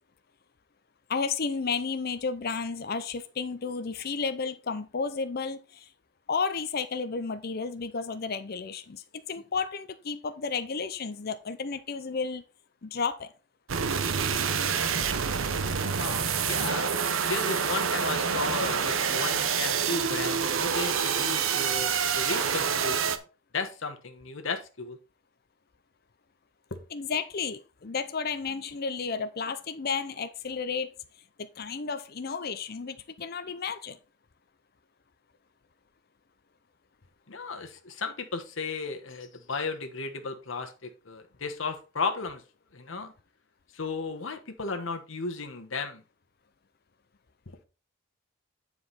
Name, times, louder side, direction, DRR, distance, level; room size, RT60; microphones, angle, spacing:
voice 1, 1.1-5.9 6.3-12.4 12.8-13.3 26.9-30.9 31.6-34.0, left 5 dB, 50° left, 0.6 m, -32 dB
sound 1, 13.7-23.2, right 6 dB, 80° right, 0.8 m, -27 dB
voice 2, 16.0-23.2 23.5-25.0 26.7-26.8 37.3-42.4 42.7-43.1 43.7-46.0, left 4 dB, 70° left, 1.2 m, -34 dB
9.4 x 4.8 x 4.1 m
head